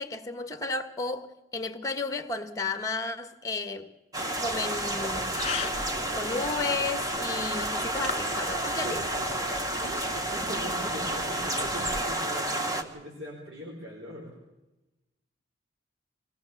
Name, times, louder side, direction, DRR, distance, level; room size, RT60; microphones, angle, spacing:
voice 1, 0.0-3.9 4.4-5.6 6.1-9.0, left 3 dB, 20° left, 1.5 m, -33 dB
sound 1, 4.1-12.8, right 1 dB, 20° right, 1.7 m, -30 dB
sound 2, 4.7-12.0, left 4 dB, 35° left, 2.2 m, -41 dB
voice 2, 8.8-9.3 9.8-14.4, right 1 dB, 65° right, 4.9 m, -41 dB
24.5 x 18.0 x 7.3 m
head